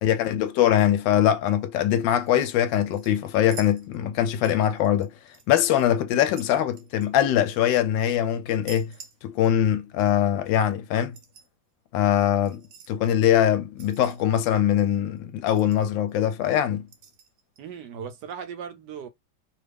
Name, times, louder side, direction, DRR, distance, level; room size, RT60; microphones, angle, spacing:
voice 1, 0.0-5.1 5.5-8.9 9.2-11.2 11.9-16.9, left 10 dB, 80° left, 1.3 m, -22 dB
sound 1, 2.3-2.5 2.9-4.2 4.4-5.5 5.7-7.8 8.5-9.7 10.0-10.1 10.9-11.5 12.5-12.9 13.8-14.5 14.9-15.0 15.2-15.3 15.5-16.1 16.9-17.6 18.3-18.4, right 6 dB, 85° right, 1.4 m, -48 dB
voice 2, 17.6-19.1, right 7 dB, 70° right, 1.2 m, -37 dB
3.2 x 2.4 x 3.3 m
omnidirectional pair, 2.1 m